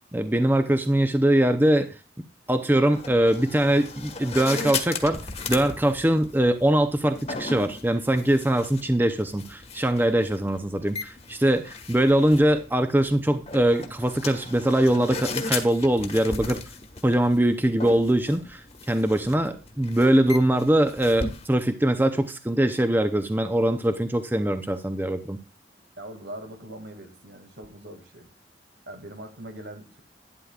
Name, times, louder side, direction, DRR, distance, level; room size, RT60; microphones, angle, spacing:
voice 1, 0.1-1.9 2.5-5.2 5.5-16.6 17.0-25.4, right 1 dB, 10° right, 8 dB, 0.6 m, -22 dB
sound 1, 2.7-21.5, left 4 dB, 35° left, 1.4 m, -37 dB
voice 2, 26.0-28.3 28.9-30.0, right 1 dB, 75° right, 6 dB, 2.2 m, -41 dB
11.5 x 10.0 x 2.4 m, 0.31 s
head